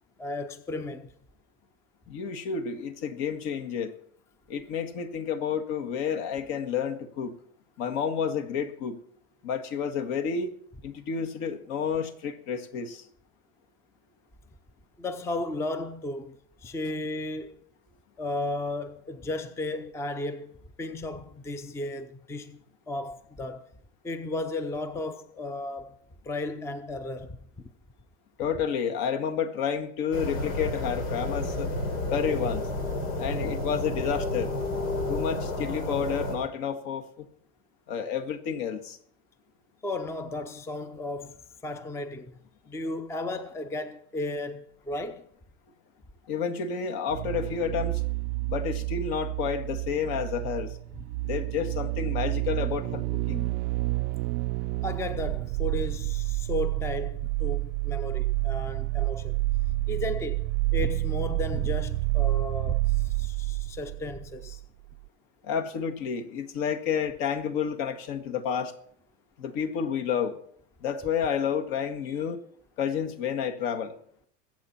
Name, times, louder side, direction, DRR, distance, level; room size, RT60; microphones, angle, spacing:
voice 1, 0.2-1.1 15.0-17.6 18.2-23.7 24.0-25.9 26.2-27.7 39.8-42.4 42.7-45.3 54.8-59.4 59.7-64.6, left 2 dB, 5° left, 0.6 m, -34 dB
voice 2, 2.1-3.9 4.5-7.3 7.8-9.0 9.4-10.5 10.8-13.1 28.4-31.7 32.1-32.6 33.2-34.5 35.1-37.3 37.9-39.0 46.3-48.0 48.5-50.7 51.2-53.5 65.4-68.7 69.4-70.4 70.8-72.4 72.8-73.9, left 7 dB, 60° left, 1.8 m, -30 dB
sound 1, 30.1-36.4, left 2 dB, 90° left, 4.2 m, -31 dB
sound 2, 47.1-64.6 64.9-65.0, right 21 dB, 70° right, 0.5 m, -29 dB
22.0 x 8.1 x 4.3 m
supercardioid pair, 120°, 40 cm